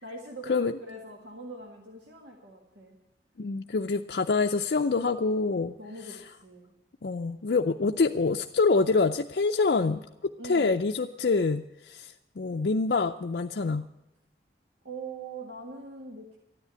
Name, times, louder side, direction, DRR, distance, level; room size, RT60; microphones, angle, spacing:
voice 1, 0.0-3.0 5.8-6.7 10.4-10.8 14.8-16.4, right 2 dB, 90° right, 1 dB, 1.8 m, -42 dB
voice 2, 3.4-5.8 7.0-13.9, left 4 dB, 65° left, 5 dB, 0.5 m, -26 dB
13.0 x 10.0 x 8.7 m, 0.96 s
head